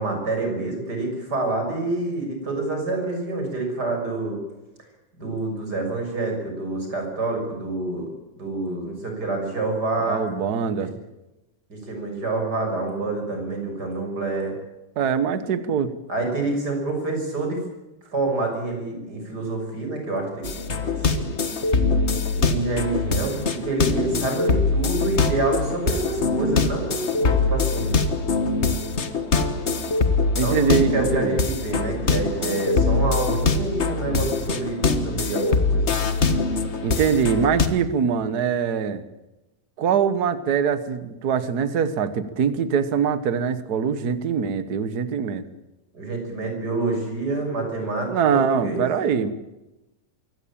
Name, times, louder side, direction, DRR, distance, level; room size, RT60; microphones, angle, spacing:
voice 1, 0.0-4.4 5.2-8.1 8.4-10.2 11.7-14.5 16.1-17.6 18.1-20.5 20.8-21.3 22.4-28.0 30.3-30.6 30.9-35.9 45.9-48.8, right 2 dB, 30° right, 3 dB, 7.0 m, -27 dB
voice 2, 10.0-10.9 15.0-15.9 30.3-31.4 32.4-32.6 36.8-39.0 39.8-45.4 48.1-49.3, right 7 dB, 90° right, 13 dB, 0.8 m, -23 dB
sound 1, 20.4-37.7, left 4 dB, 85° left, 0.6 m, -23 dB
23.5 x 17.5 x 8.8 m, 0.98 s
omnidirectional pair, 3.7 m